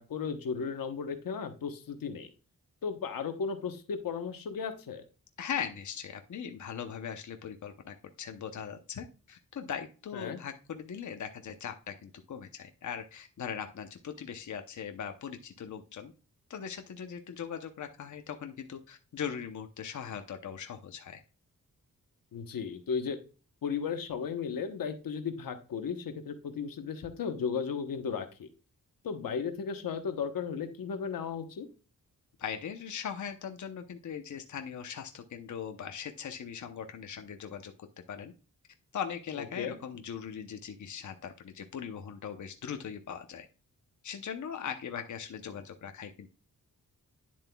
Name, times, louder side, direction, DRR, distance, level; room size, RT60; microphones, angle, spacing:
voice 1, 0.0-2.3 2.8-5.0 10.1-10.4 22.3-23.2 23.6-28.5 29.0-31.7 39.4-39.8, left 6 dB, 85° left, 7 dB, 1.1 m, -35 dB
voice 2, 5.4-16.1 16.5-21.2 32.4-38.3 38.9-43.5 44.0-46.3, left 7 dB, 60° left, 6 dB, 0.8 m, -40 dB
10.0 x 7.4 x 2.3 m, 0.34 s
wide cardioid pair, 125°, 33 cm